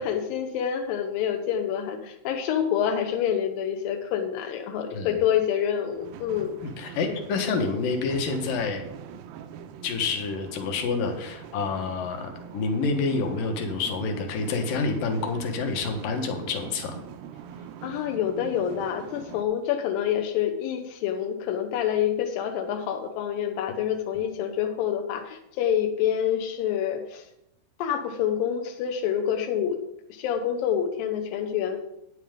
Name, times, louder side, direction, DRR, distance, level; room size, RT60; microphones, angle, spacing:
voice 1, 0.0-6.6 7.1-7.2 17.8-27.3 27.8-29.8 30.1-31.8, left 9 dB, 90° left, 5 dB, 2.5 m, -27 dB
sound 1, 5.9-19.5, right 8 dB, 90° right, 2.5 m, -43 dB
voice 2, 6.6-8.8 9.8-17.0, left 4 dB, 75° left, 5 dB, 2.8 m, -28 dB
11.0 x 9.4 x 3.7 m, 0.83 s
omnidirectional pair, 4.0 m